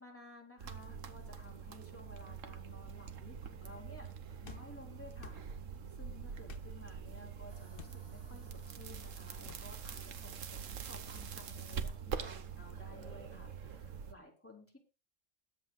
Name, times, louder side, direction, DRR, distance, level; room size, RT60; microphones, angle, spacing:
voice 1, 0.0-4.1 4.4-5.7 6.0-14.8, left 2 dB, 10° left, 0 dB, 3.6 m, -55 dB
sound 1, 0.6-14.1, right 7 dB, 80° right, 1.4 m, -45 dB
sound 2, 4.4-4.7 5.2-5.4 6.5-6.7 7.7-8.0 9.5-9.7, left 5 dB, 50° left, 1.1 m, -50 dB
sound 3, 7.5-12.9, right 1 dB, 20° right, 2.4 m, -65 dB
21.0 x 8.4 x 2.4 m, 0.30 s
omnidirectional pair, 1.3 m